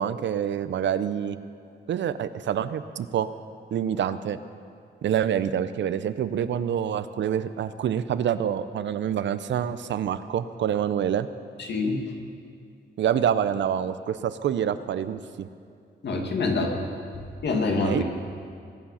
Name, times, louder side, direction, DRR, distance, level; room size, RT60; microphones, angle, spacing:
voice 1, 0.0-1.4 1.9-3.3 3.7-4.4 5.0-11.3 13.0-15.5 17.8-18.0, right 9 dB, 85° right, 13 dB, 0.6 m, -26 dB
voice 2, 11.6-12.0 16.0-16.8 17.4-18.0, left 3 dB, 70° left, 2 dB, 2.0 m, -25 dB
22.0 x 8.9 x 5.6 m, 2.3 s
wide cardioid pair, 115°, 18 cm